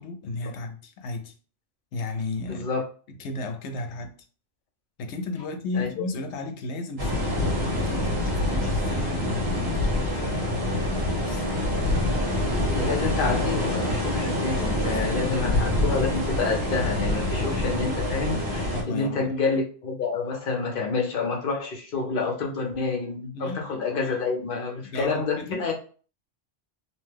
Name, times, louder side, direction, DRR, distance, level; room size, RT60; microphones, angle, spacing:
voice 1, 0.0-1.3 1.9-2.7 3.1-4.1 5.0-12.1 14.8-15.8 18.7-19.3 23.3-23.8 24.8-25.7, left 2 dB, 80° left, 7 dB, 0.9 m, -35 dB
voice 2, 2.5-2.8 5.7-5.9 12.7-25.7, left 4 dB, 55° left, 1 dB, 0.8 m, -28 dB
sound 1, 7.0-18.8, left 1 dB, 70° right, 1.3 m, -26 dB
2.8 x 2.2 x 3.3 m, 0.40 s
omnidirectional pair, 1.2 m